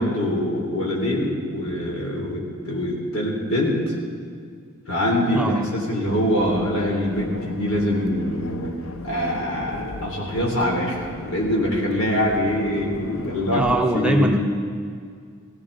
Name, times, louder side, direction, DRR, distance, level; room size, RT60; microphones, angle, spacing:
voice 1, 0.0-3.9 4.9-8.7 9.0-11.0 11.2-14.4, left 1 dB, 85° left, -2 dB, 3.7 m, -24 dB
sound 1, 6.1-13.7, left 2 dB, 65° left, 0.8 m, -37 dB
voice 2, 13.5-14.4, right 1 dB, 5° right, 2 dB, 0.8 m, -21 dB
18.0 x 17.0 x 4.1 m, 2.1 s
head